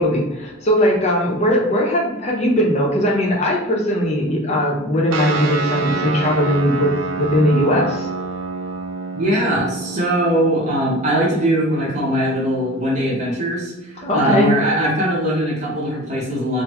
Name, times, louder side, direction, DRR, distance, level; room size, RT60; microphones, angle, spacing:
voice 1, 0.0-8.1 14.0-14.5, equal, 35° left, -1 dB, 0.7 m, -19 dB
sound 1, 5.1-16.0, right 4 dB, 80° right, 0.5 m, -30 dB
voice 2, 9.2-16.6, right 1 dB, 35° right, -4 dB, 0.8 m, -20 dB
3.8 x 2.0 x 3.0 m, 0.96 s
head